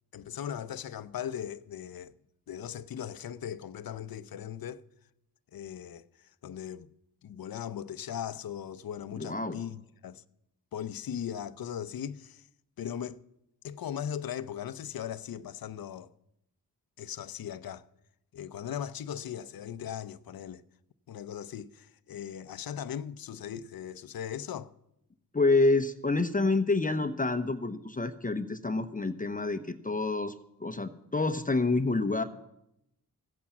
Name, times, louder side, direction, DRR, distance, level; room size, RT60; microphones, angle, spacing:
voice 1, 0.1-2.1 2.5-4.8 5.5-6.9 7.2-10.2 10.7-12.5 12.8-13.2 13.6-16.1 17.0-17.9 18.3-20.6 21.1-24.7, left 9 dB, 65° left, 0.7 m, -38 dB
voice 2, 9.2-9.6 25.3-30.3 30.6-32.2, left 3 dB, 20° left, 0.8 m, -28 dB
15.0 x 8.6 x 7.2 m
cardioid pair, 60°, 38 cm